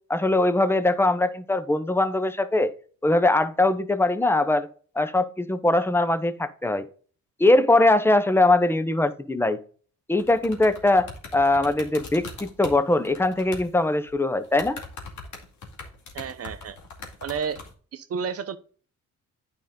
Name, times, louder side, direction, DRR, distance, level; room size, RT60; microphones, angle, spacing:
voice 1, 0.1-2.7 3.0-4.7 5.0-6.8 7.4-9.6 10.1-14.8, left 2 dB, 10° left, 0.8 m, -21 dB
sound 1, 10.2-13.7 14.1-14.2 14.4-17.7, left 4 dB, 70° left, 2.3 m, -41 dB
voice 2, 16.1-16.8 17.2-17.6 17.9-18.6, right 6 dB, 50° right, 0.8 m, -31 dB
9.3 x 5.3 x 3.8 m
cardioid pair, 90°, 30 cm